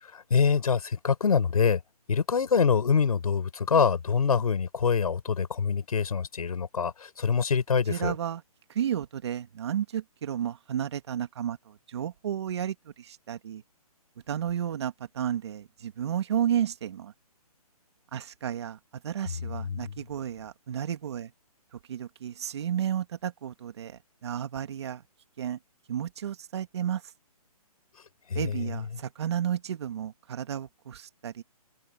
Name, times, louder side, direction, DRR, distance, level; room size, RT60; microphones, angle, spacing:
voice 1, 0.0-1.8 2.1-8.1 19.6-19.9 28.3-28.8, left 6 dB, 70° left, 6.7 m, -25 dB
voice 2, 7.9-8.4 8.7-13.6 14.3-17.1 18.1-21.3 21.9-25.0 25.4-25.6 25.9-27.0 28.3-31.4, right 9 dB, 45° right, 2.3 m, -32 dB
hypercardioid pair, 165°, 20 cm